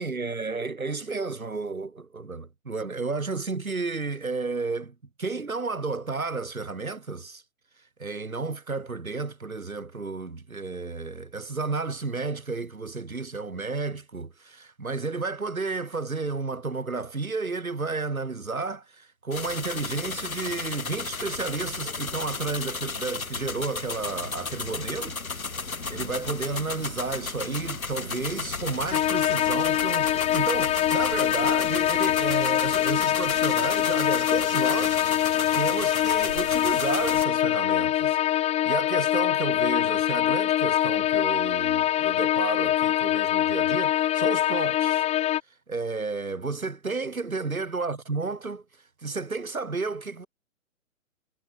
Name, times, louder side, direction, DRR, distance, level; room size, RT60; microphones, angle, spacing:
voice 1, 0.0-7.4 8.0-25.2 25.9-35.3 35.5-45.0 45.7-48.6 49.0-50.3, right 4 dB, 90° right, 5.5 m, -32 dB
sound 1, 19.3-37.2, left 4 dB, 85° left, 6.8 m, -34 dB
sound 2, 28.9-45.4, left 12 dB, 15° left, 1.8 m, -24 dB
figure-of-eight pair, 130°, 41 cm